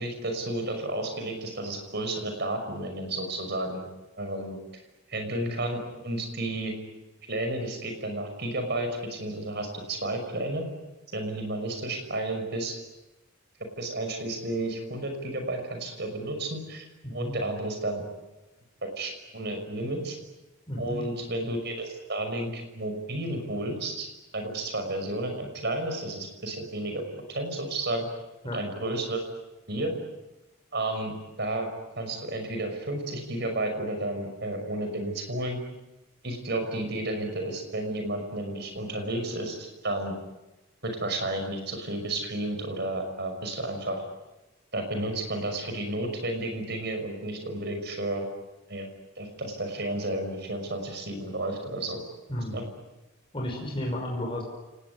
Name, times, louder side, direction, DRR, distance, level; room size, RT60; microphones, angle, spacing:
voice 1, 0.0-3.8 4.2-4.6 5.1-6.8 7.3-10.6 11.1-12.8 13.8-16.9 17.1-18.0 19.0-20.2 20.8-24.1 24.3-27.0 27.3-28.1 28.5-29.2 29.7-29.9 30.7-35.6 36.2-40.1 40.8-44.0 44.7-48.3 48.7-48.9 49.2-52.0 52.5-52.6, right 1 dB, 50° right, 5 dB, 5.9 m, -32 dB
voice 2, 17.0-17.3 20.7-21.0 28.4-28.6 52.3-52.6 53.3-54.4, left 1 dB, 25° left, -1 dB, 5.6 m, -32 dB
29.5 x 19.0 x 9.7 m, 1.0 s
head